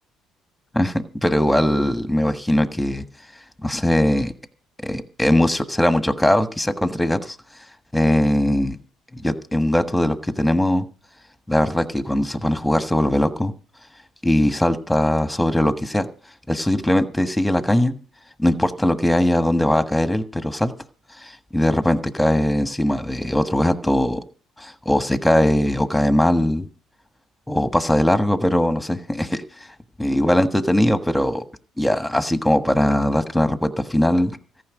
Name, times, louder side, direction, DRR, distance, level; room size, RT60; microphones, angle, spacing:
voice 1, 0.7-3.0 3.6-4.3 4.8-7.4 7.9-8.7 9.1-10.8 11.5-13.5 14.2-16.1 16.5-17.9 18.4-20.7 21.2-24.2 24.6-26.7 27.5-29.4 30.0-31.4 31.8-34.3, left 1 dB, 5° left, 10 dB, 1.4 m, -20 dB
14.0 x 5.8 x 9.3 m, 0.38 s
supercardioid pair, 80°, 0 cm